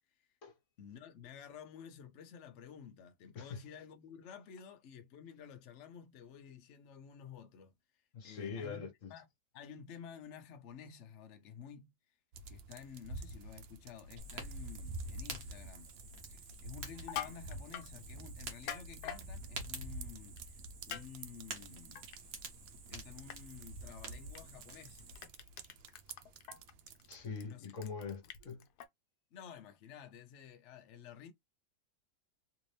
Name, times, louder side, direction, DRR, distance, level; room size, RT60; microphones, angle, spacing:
voice 1, 0.8-7.7 8.2-9.3 9.5-11.9 12.5-15.9 16.3-20.6 20.9-22.0 22.9-25.0 27.4-27.8 29.3-31.3, left 8 dB, 90° left, 0.6 m, -52 dB
voice 2, 8.1-9.1 27.1-28.6, left 5 dB, 50° left, 1.2 m, -43 dB
sound 1, 12.3-27.3, right 2 dB, 85° right, 1.3 m, -49 dB
Fire, 14.2-25.3, right 3 dB, 55° right, 1.4 m, -50 dB
Crushing, 16.9-17.9 18.5-19.2 20.4-20.5 20.9-21.0 21.4-22.5 22.8-23.0 23.3-23.4 24.3-24.4 24.7-28.8, left 10 dB, 70° left, 1.0 m, -44 dB
3.4 x 2.7 x 3.2 m
omnidirectional pair, 2.0 m